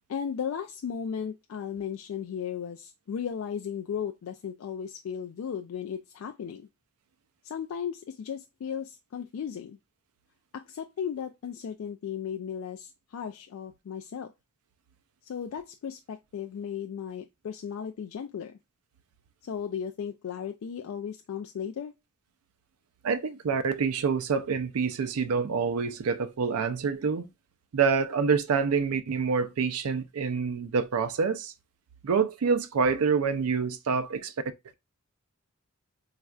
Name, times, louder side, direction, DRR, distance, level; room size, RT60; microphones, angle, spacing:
voice 1, 0.0-6.7 7.4-9.8 10.5-14.3 15.2-18.6 19.4-21.9, left 7 dB, 70° left, 0.3 m, -36 dB
voice 2, 23.0-27.3 27.7-31.5 32.0-34.3, right 5 dB, 85° right, 0.4 m, -27 dB
4.2 x 2.4 x 2.3 m
head